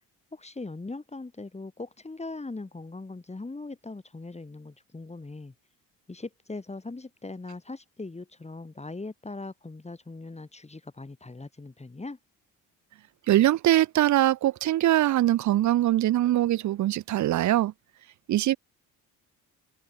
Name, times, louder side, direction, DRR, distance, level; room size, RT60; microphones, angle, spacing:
voice 1, 0.3-5.5 6.1-12.2, left 3 dB, 20° left, 3.7 m, -40 dB
voice 2, 13.3-17.7 18.3-18.6, right 14 dB, 55° right, 0.7 m, -22 dB
supercardioid pair, 75°, 35 cm